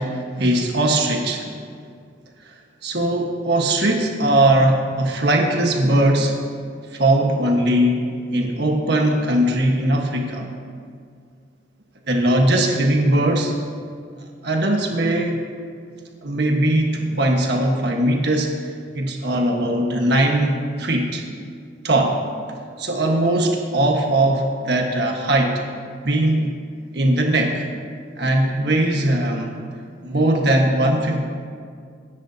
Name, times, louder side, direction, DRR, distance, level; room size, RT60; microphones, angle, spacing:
voice 1, 0.4-1.6 2.4-6.4 6.9-8.0 8.3-10.5 12.1-13.5 14.4-15.4 16.2-21.2 21.8-22.2 22.8-25.5 26.0-26.5 26.9-27.6 28.2-29.5 30.0-31.2, right 1 dB, 60° right, 1 dB, 1.4 m, -20 dB
23.5 x 10.5 x 2.8 m, 2.2 s
head